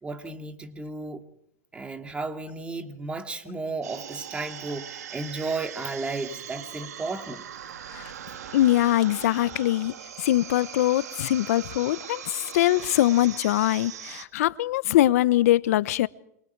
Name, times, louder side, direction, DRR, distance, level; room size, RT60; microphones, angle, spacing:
voice 1, 0.0-1.2 1.7-7.5, right 3 dB, 15° right, 2.4 m, -34 dB
sound 1, 3.8-14.2, right 9 dB, 90° right, 2.1 m, -40 dB
voice 2, 8.5-16.1, left 14 dB, 70° left, 0.9 m, -23 dB
28.5 x 24.0 x 4.7 m
hypercardioid pair, 125°, 8 cm